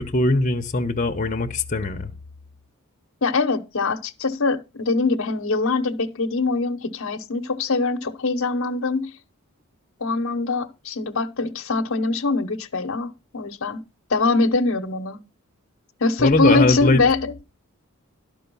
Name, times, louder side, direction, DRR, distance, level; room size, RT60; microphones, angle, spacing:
voice 1, 0.0-2.1 16.2-17.0, left 2 dB, 35° left, 0.9 m, -21 dB
voice 2, 3.2-9.1 10.0-13.8 14.1-15.2 16.0-17.4, left 3 dB, 70° left, 0.9 m, -23 dB
11.5 x 5.3 x 5.4 m
head